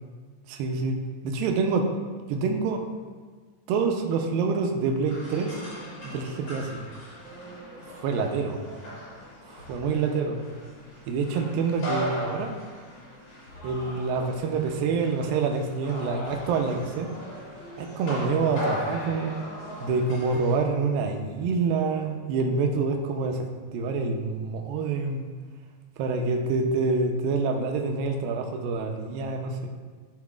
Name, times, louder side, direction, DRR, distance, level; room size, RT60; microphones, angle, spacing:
voice 1, 0.5-1.0 1.2-1.9 2.3-2.8 3.7-5.6 6.0-6.8 8.0-8.6 9.5-10.4 11.1-12.6 13.6-17.1 17.8-19.4 19.8-23.5 23.7-25.3 26.0-29.7, right 4 dB, 90° right, 3 dB, 2.4 m, -27 dB
sound 1, 5.0-20.6, equal, 45° left, 3.1 m, -38 dB
13.5 x 4.6 x 2.4 m, 1.5 s
omnidirectional pair, 4.1 m